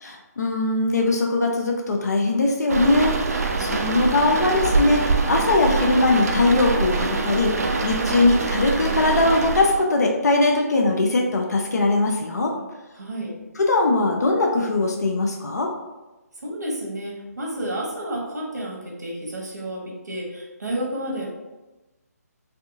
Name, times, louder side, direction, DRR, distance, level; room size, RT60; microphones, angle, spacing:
voice 1, 0.0-3.2 3.6-7.6 7.8-12.6 13.6-15.7, left 2 dB, 75° left, 1 dB, 0.6 m, -20 dB
sound 1, 2.7-9.8, right 3 dB, 65° right, 0.5 m, -24 dB
voice 2, 3.5-4.5 12.9-13.4 16.4-21.3, right 1 dB, 80° right, -2 dB, 1.1 m, -31 dB
3.4 x 2.5 x 2.6 m, 1.1 s
figure-of-eight pair, 155°, 9 cm